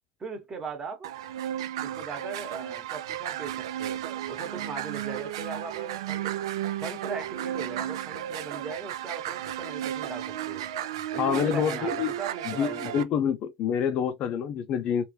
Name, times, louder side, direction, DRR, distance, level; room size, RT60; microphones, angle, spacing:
voice 1, 0.2-1.1 1.8-4.0 4.3-6.3 6.8-10.7 11.1-13.0, right 5 dB, 20° right, 1.0 m, -39 dB
sound 1, 1.0-13.0, right 11 dB, 85° right, 0.5 m, -34 dB
voice 2, 11.2-12.1 12.5-15.0, left 8 dB, 45° left, 0.5 m, -27 dB
3.0 x 2.5 x 3.1 m
supercardioid pair, 115°, 3 cm